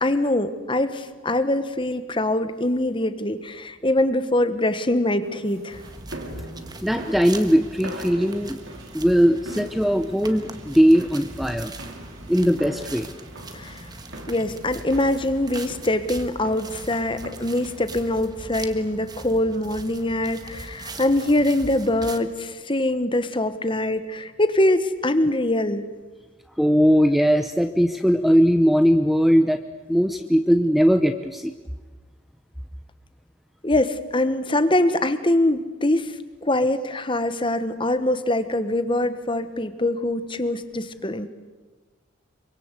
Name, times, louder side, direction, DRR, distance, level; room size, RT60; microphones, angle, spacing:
voice 1, 0.0-5.8 13.5-13.8 14.3-25.8 33.6-41.3, left 1 dB, 25° left, 11 dB, 1.3 m, -23 dB
sound 1, 5.2-19.1, right 1 dB, 70° right, 4.0 m, -42 dB
sound 2, 5.7-22.2, right 2 dB, 20° right, 1.5 m, -40 dB
voice 2, 6.8-8.6 8.9-11.7 12.3-13.1 26.6-29.6 29.9-31.5, equal, ahead, 7 dB, 0.8 m, -19 dB
26.0 x 24.0 x 8.3 m, 1.3 s
head